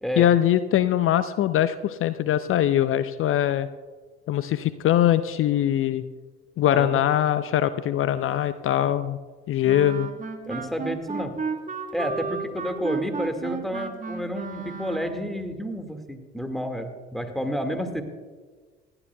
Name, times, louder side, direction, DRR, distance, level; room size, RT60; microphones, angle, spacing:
voice 1, 0.2-3.7 4.3-6.0 6.6-9.2 9.5-10.1, left 11 dB, 40° left, 14 dB, 0.6 m, -22 dB
voice 2, 6.6-7.0 10.5-11.4 11.9-18.0, equal, ahead, 5 dB, 1.9 m, -30 dB
Wind instrument woodwind instrument, 9.6-15.3, right 5 dB, 25° right, 1.6 m, -33 dB
28.0 x 12.0 x 2.3 m, 1.4 s
figure-of-eight pair, 55°, 32 cm